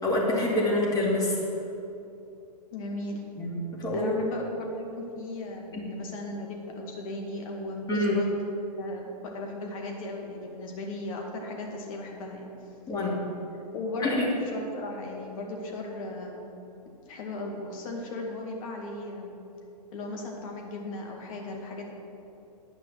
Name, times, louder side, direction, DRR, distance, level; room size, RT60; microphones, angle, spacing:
voice 1, 0.0-1.4 3.4-4.1 5.7-5.9 7.9-8.2 12.9-13.2 14.0-14.2, left 1 dB, 20° left, -4 dB, 2.6 m, -26 dB
voice 2, 2.7-3.2 3.9-8.3 8.8-12.5 13.7-16.4 17.1-19.3 19.9-21.9, left 2 dB, 55° left, 0 dB, 2.1 m, -36 dB
9.6 x 5.5 x 7.9 m, 2.8 s
hypercardioid pair, 120°, 21 cm